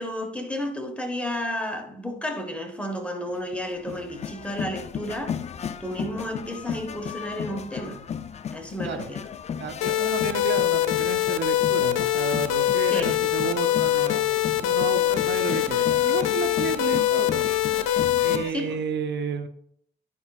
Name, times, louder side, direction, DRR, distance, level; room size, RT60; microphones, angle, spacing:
voice 1, 0.0-5.5 5.8-8.0 8.5-9.3 12.9-13.2 18.5-18.8, equal, 5° left, 1.2 m, -32 dB
sound 1, 3.3-18.5, left 7 dB, 35° left, 0.4 m, -35 dB
voice 2, 9.6-14.2 14.7-17.5 18.2-19.5, right 6 dB, 65° right, 0.8 m, -32 dB
sound 2, 9.8-18.4, left 13 dB, 90° left, 0.6 m, -23 dB
10.0 x 5.3 x 2.4 m
cardioid pair, 90°, 20 cm